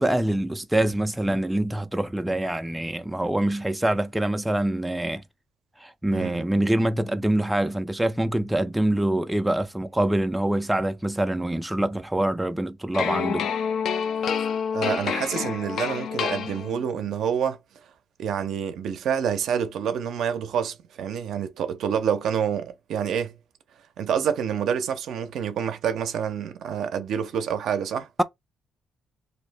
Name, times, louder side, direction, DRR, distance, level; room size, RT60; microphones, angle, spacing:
voice 1, 0.0-5.2 5.8-13.5, right 1 dB, 5° right, 0.3 m, -25 dB
voice 2, 6.1-6.4 14.7-17.6 18.2-23.3 24.0-28.1, right 8 dB, 75° right, 0.5 m, -27 dB
sound 1, 12.9-17.0, left 7 dB, 65° left, 0.4 m, -28 dB
2.6 x 2.0 x 3.3 m
cardioid pair, 90°, 0 cm